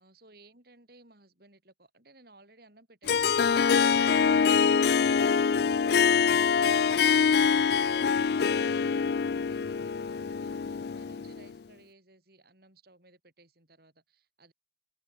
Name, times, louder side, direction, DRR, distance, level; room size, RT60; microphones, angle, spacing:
voice 1, 0.0-14.5, right 2 dB, 55° right, 5.7 m, -58 dB
Harp, 3.1-11.5, left 6 dB, 55° left, 0.4 m, -24 dB
head